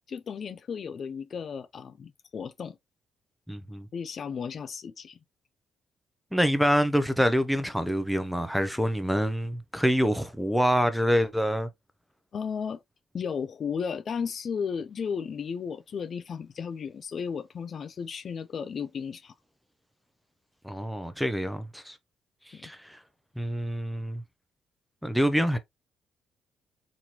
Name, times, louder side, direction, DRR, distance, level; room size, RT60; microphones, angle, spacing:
voice 1, 0.1-2.8 3.9-5.2 12.3-12.8 13.1-19.3 22.5-22.7, left 6 dB, 50° left, 0.4 m, -34 dB
voice 2, 3.5-3.9 6.3-11.7 20.6-22.0 22.5-23.0 23.4-24.2 25.0-25.6, equal, ahead, 0.6 m, -26 dB
4.1 x 3.0 x 2.9 m
cardioid pair, 90°, 0 cm